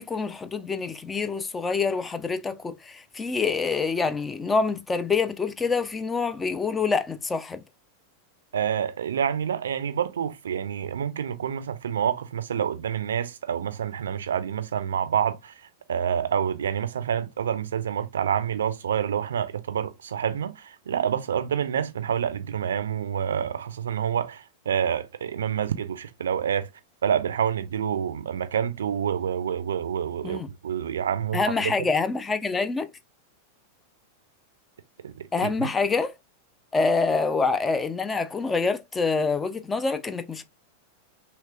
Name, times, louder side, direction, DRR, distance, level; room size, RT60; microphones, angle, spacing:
voice 1, 0.0-7.6 30.2-30.5 31.3-32.9 35.3-36.1 36.7-40.4, left 4 dB, 15° left, 0.4 m, -26 dB
voice 2, 8.5-15.5 15.9-26.7 27.0-31.5 35.0-35.7, right 8 dB, 65° right, 0.4 m, -28 dB
3.0 x 3.0 x 2.3 m
figure-of-eight pair, 90°, 0 cm